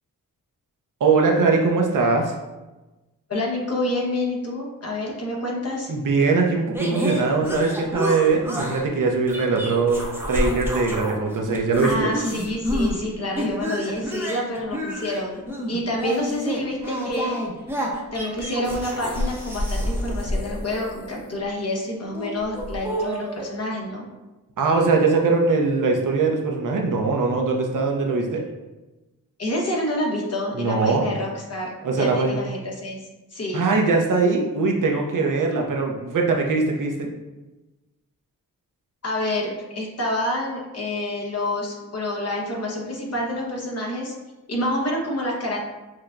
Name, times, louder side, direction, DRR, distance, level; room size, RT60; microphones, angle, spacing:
voice 1, 1.0-2.3 5.9-12.1 24.6-28.4 30.5-31.1 31.8-32.4 33.5-37.1, right 4 dB, 60° right, 1 dB, 0.7 m, -21 dB
voice 2, 3.3-5.9 11.8-17.4 18.1-24.1 29.4-33.0 33.3-33.6 39.0-44.2 44.5-45.6, left 1 dB, 45° left, -2 dB, 1.1 m, -28 dB
sound 1, 6.7-8.8 9.3-11.2 11.5-13.0 13.4-21.3 22.1-23.5, equal, 5° right, 0.8 m, -29 dB
6.2 x 2.2 x 2.5 m, 1.1 s
cardioid pair, 70°, 35 cm